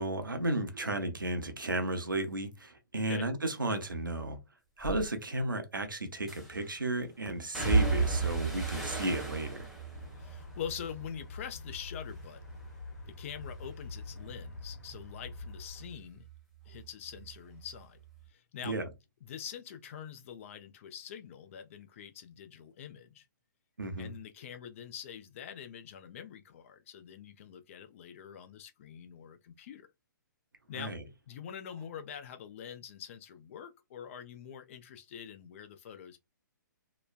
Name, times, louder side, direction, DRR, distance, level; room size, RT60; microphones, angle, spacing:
voice 1, 0.0-4.4 4.8-9.7 18.6-18.9 23.8-24.1 30.7-31.0, right 2 dB, 80° right, 0.7 m, -34 dB
sound 1, 4.8-5.0 6.3-6.7 7.5-11.8 12.1-12.7 13.1-16.4 16.7-17.8 18.1-18.2, right 3 dB, ahead, 0.9 m, -34 dB
sound 2, 9.9-15.9, left 4 dB, 60° left, 1.3 m, -46 dB
voice 2, 10.2-12.6 13.1-16.3 16.7-18.0 18.3-18.8 19.2-23.3 24.0-29.9 30.7-31.0 31.3-36.2, left 8 dB, 40° left, 0.5 m, -45 dB
3.0 x 2.1 x 2.4 m
figure-of-eight pair, 125°, 11 cm